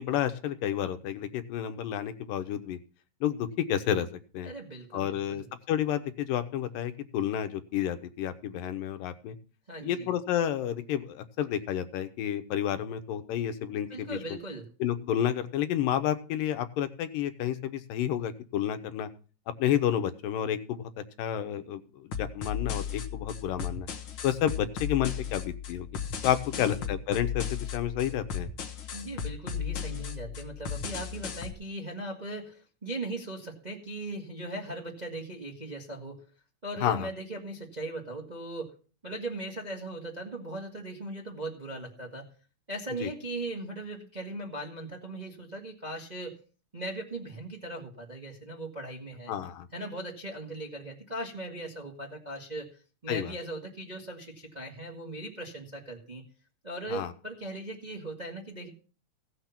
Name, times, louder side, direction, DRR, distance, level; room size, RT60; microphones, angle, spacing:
voice 1, 0.0-2.8 3.2-4.1 4.3-4.5 4.9-9.4 9.8-14.4 14.8-19.1 19.6-20.9 21.2-23.9 24.2-25.9 26.2-28.5 36.8-37.1 43.0-43.1 49.3-49.7 53.1-53.3 56.9-57.1, left 10 dB, 80° left, 10 dB, 2.6 m, -30 dB
voice 2, 4.4-5.5 9.7-10.1 13.9-14.7 26.5-26.9 28.9-36.2 36.6-38.7 39.0-42.2 42.7-46.3 46.7-49.3 49.7-56.2 56.6-58.7, right 2 dB, 20° right, 0 dB, 1.1 m, -39 dB
sound 1, 22.1-31.5, left 8 dB, 60° left, 1.4 m, -36 dB
16.5 x 6.5 x 5.8 m, 0.37 s
omnidirectional pair, 3.9 m